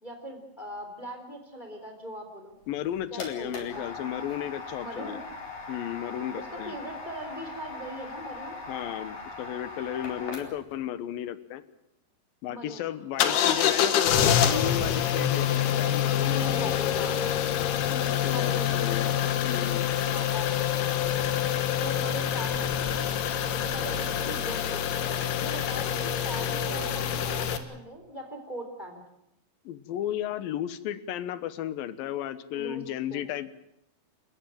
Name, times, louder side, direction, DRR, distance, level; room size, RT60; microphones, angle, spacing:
voice 1, 0.0-2.5 3.1-3.8 4.8-5.2 6.3-8.5 12.4-12.8 13.2-13.7 16.2-17.2 18.3-19.3 20.1-21.3 21.8-23.0 23.5-29.0 32.5-32.8 33.1-33.2, equal, 10° left, 4 dB, 3.3 m, -40 dB
sound 1, 2.6-10.8, left 3 dB, 50° left, 5.7 m, -40 dB
voice 2, 2.7-5.2 5.7-6.8 8.7-11.6 12.4-17.2 17.9-19.1 19.4-19.9 29.7-33.5, left 11 dB, 75° left, 14 dB, 2.7 m, -34 dB
sound 2, 13.2-27.6, left 9 dB, 90° left, 3.6 m, -26 dB
29.5 x 15.0 x 9.1 m, 0.81 s
omnidirectional pair, 4.5 m